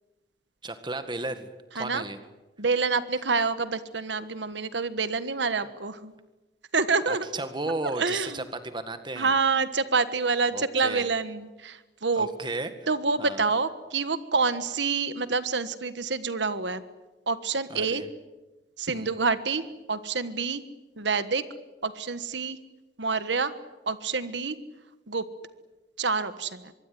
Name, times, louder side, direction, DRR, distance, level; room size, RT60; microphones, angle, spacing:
voice 1, 0.6-2.2 7.1-9.3 10.5-11.1 12.1-12.7 13.2-13.4 17.7-18.1 18.9-19.1, right 2 dB, 25° right, 9 dB, 1.8 m, -34 dB
voice 2, 2.6-6.1 6.7-7.3 8.0-8.4 9.2-12.3 12.9-16.8 17.3-18.0 18.8-20.6 21.0-21.4 21.8-22.6 23.0-23.5 23.9-24.6 25.1-25.2 26.0-26.7, right 4 dB, 80° right, 12 dB, 1.4 m, -27 dB
25.0 x 23.0 x 9.5 m, 1.1 s
head